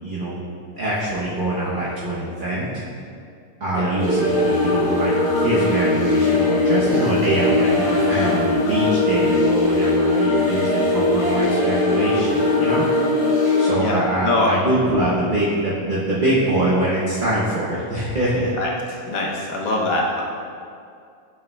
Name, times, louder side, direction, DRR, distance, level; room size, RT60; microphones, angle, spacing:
voice 1, 0.0-0.4 0.8-2.8 3.6-12.9 13.6-18.5, right 1 dB, 40° right, -8 dB, 0.9 m, -23 dB
sound 1, 4.0-13.7, left 2 dB, 40° left, 1.6 m, -20 dB
voice 2, 13.8-14.6 18.6-18.7 19.0-20.2, left 2 dB, 75° left, -2 dB, 1.3 m, -23 dB
7.1 x 6.7 x 2.2 m, 2.3 s
omnidirectional pair, 1.5 m